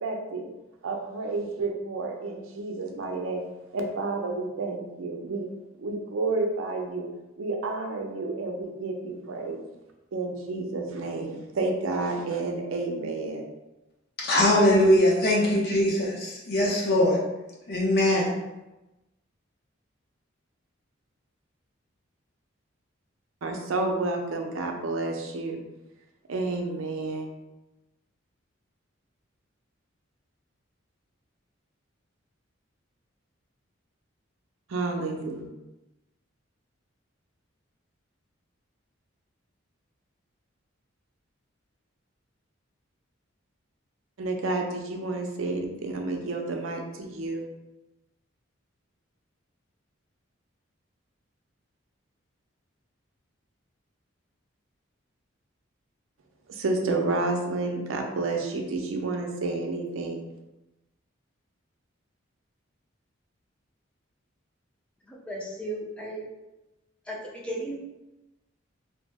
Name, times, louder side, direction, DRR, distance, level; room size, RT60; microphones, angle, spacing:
voice 1, 0.0-0.5 0.8-3.4 3.7-5.5 5.8-7.1 7.4-9.6 10.1-13.5 23.4-25.6 26.3-27.3 34.7-35.5 44.2-47.5 56.5-60.3, right 3 dB, 80° right, 3 dB, 0.5 m, -30 dB
voice 2, 14.2-17.2 17.7-18.3, left 1 dB, 50° left, -3 dB, 0.7 m, -21 dB
voice 3, 65.0-66.3 67.1-67.8, right 1 dB, 5° left, -3 dB, 0.4 m, -35 dB
2.9 x 2.1 x 3.4 m, 1.0 s
head